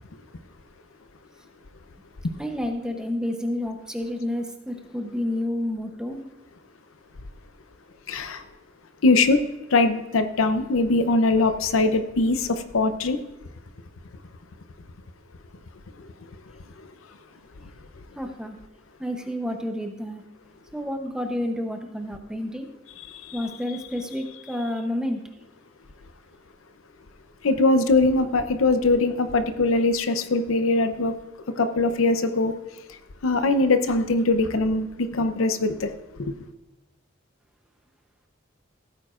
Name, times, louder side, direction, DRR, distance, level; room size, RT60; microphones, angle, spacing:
voice 1, 2.4-6.2 18.2-18.6 19.0-20.2 20.7-22.7 23.3-25.2, left 1 dB, 5° right, 0.7 m, -30 dB
voice 2, 8.1-8.4 9.0-9.4 9.7-13.2 16.0-16.1 16.8-16.9 23.1-23.4 27.4-31.1 31.6-32.5 32.9-36.3, left 2 dB, 80° left, 0.7 m, -22 dB
15.5 x 9.0 x 2.5 m
head